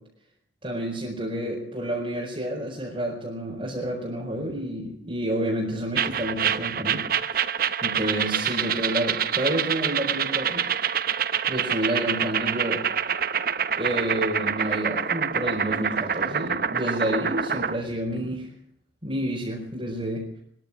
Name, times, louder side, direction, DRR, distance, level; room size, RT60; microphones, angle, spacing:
voice 1, 0.6-7.0 7.3-7.5 7.8-10.7 11.5-12.9 13.8-18.5 19.0-20.4, right 1 dB, 25° right, -4 dB, 4.9 m, -29 dB
sound 1, 6.0-17.8, right 8 dB, 50° right, 0.9 m, -26 dB
23.0 x 14.0 x 8.5 m, 0.68 s
head